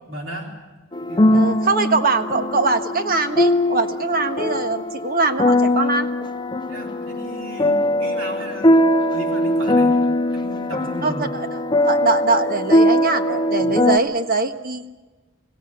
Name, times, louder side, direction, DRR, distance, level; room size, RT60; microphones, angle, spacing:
voice 1, 0.1-0.5 1.1-1.5 6.7-10.0 10.3-11.3 13.6-13.7, equal, 70° right, 0 dB, 3.8 m, -34 dB
sound 1, 0.9-14.0, left 1 dB, 20° left, 0.7 m, -20 dB
voice 2, 1.3-6.1 11.0-14.8, right 3 dB, 45° right, 8 dB, 1.4 m, -22 dB
25.5 x 17.0 x 8.6 m, 1.3 s
head